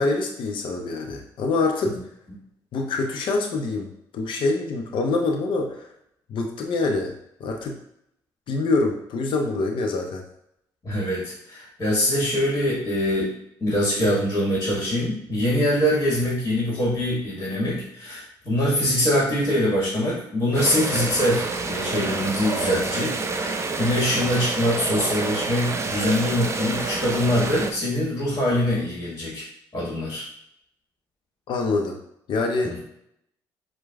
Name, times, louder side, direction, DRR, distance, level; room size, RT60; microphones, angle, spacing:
voice 1, 0.0-2.0 2.7-5.9 6.3-7.1 7.4-7.8 8.5-10.2 31.5-32.0 32.3-32.7, left 3 dB, 60° left, 2 dB, 0.5 m, -25 dB
voice 2, 10.8-13.3 13.6-29.4 29.7-30.3 32.6-32.8, equal, 30° left, -5 dB, 1.4 m, -23 dB
sound 1, 20.5-27.7, right 3 dB, 30° right, 0.4 m, -28 dB
4.5 x 2.1 x 2.3 m, 0.74 s
supercardioid pair, 60°, 10 cm